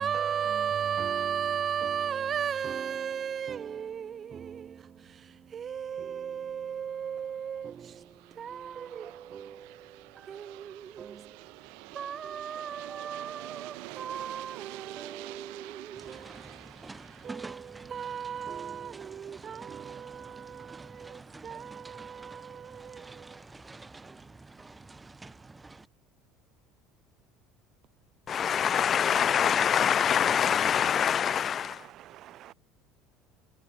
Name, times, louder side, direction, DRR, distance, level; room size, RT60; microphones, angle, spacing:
voice 1, 0.0-23.4, right 8 dB, 35° right, 0.9 m, -36 dB
Aircraft, 6.8-19.6, right 39 dB, 80° right, 1.5 m, -48 dB
sound 1, 15.9-25.9, right 3 dB, 15° right, 1.1 m, -48 dB
voice 2, 28.3-31.8, left 8 dB, 40° left, 0.6 m, -25 dB
voice 3, 31.0-32.5, right 13 dB, 55° right, 2.4 m, -51 dB
supercardioid pair, 105°, 0 cm